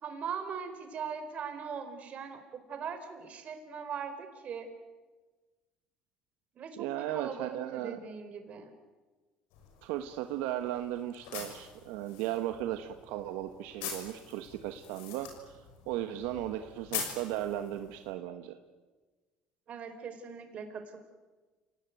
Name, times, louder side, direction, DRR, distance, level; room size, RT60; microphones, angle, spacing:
voice 1, 0.0-4.7 6.5-8.7 19.7-21.0, right 6 dB, 50° right, 7 dB, 4.7 m, -40 dB
voice 2, 6.8-8.0 9.8-15.6 15.9-18.6, right 12 dB, 85° right, 7 dB, 1.4 m, -36 dB
sound 1, 9.5-18.1, left 7 dB, 85° left, 6.5 m, -44 dB
29.0 x 18.5 x 9.4 m, 1.3 s
supercardioid pair, 105°, 3 cm